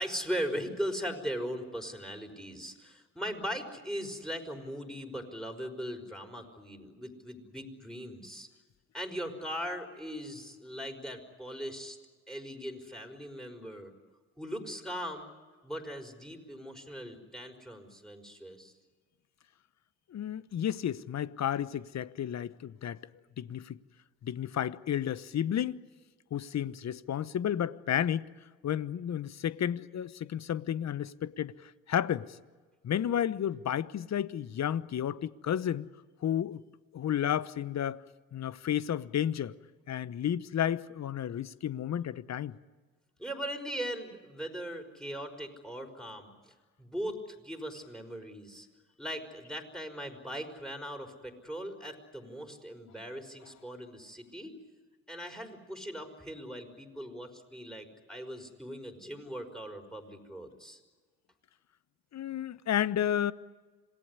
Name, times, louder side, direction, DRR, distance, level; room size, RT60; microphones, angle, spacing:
voice 1, 0.0-8.5 8.9-12.0 12.3-13.9 14.4-15.3 15.6-18.7 43.2-46.3 46.8-48.7 49.0-54.6 55.1-60.8, equal, ahead, 5.4 m, -39 dB
voice 2, 20.1-23.0 23.4-23.8 24.2-25.8 26.3-28.3 28.6-32.4 32.8-35.9 36.2-36.6 36.9-38.0 38.3-39.5 39.9-42.6 62.1-63.3, left 10 dB, 40° left, 1.0 m, -32 dB
26.5 x 19.0 x 9.8 m
hypercardioid pair, 55°, 40 cm